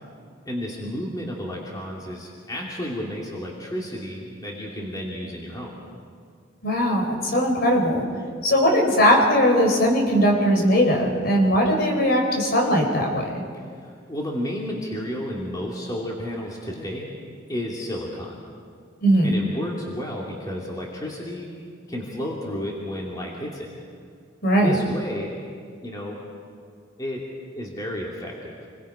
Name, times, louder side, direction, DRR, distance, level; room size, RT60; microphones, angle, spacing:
voice 1, 0.5-5.7 14.1-17.1 17.5-18.4 19.2-21.5 21.9-23.7 24.6-25.4 25.8-26.2 27.0-27.2 27.5-28.5, equal, 20° left, -3 dB, 2.7 m, -32 dB
voice 2, 6.6-8.1 8.4-13.4 19.0-19.3 24.4-24.8, equal, 55° left, 1 dB, 4.2 m, -19 dB
29.0 x 22.0 x 5.1 m, 2.2 s
head